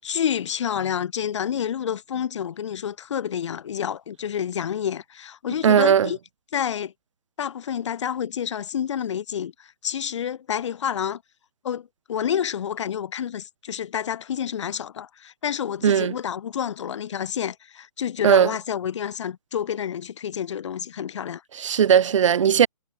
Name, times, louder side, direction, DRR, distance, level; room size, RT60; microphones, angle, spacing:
voice 1, 0.0-6.2 6.5-6.9 7.4-11.2 11.6-21.4, left 9 dB, 50° left, 6.0 m, -29 dB
voice 2, 5.6-6.1 15.8-16.1 18.2-18.5 21.5-22.7, right 8 dB, 55° right, 1.7 m, -17 dB
hypercardioid pair, 165°, 19 cm